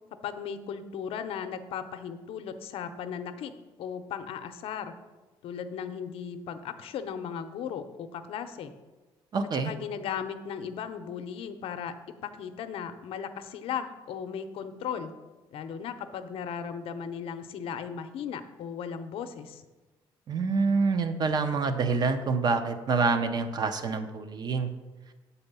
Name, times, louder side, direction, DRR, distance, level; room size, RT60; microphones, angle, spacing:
voice 1, 0.2-3.5 3.8-4.9 5.4-8.7 9.5-15.1 15.5-19.6, left 7 dB, 70° left, 9 dB, 0.7 m, -36 dB
voice 2, 9.3-9.7 20.3-24.7, right 4 dB, 45° right, 9 dB, 0.7 m, -26 dB
8.0 x 4.2 x 6.8 m, 1.2 s
cardioid pair, 125°, 10 cm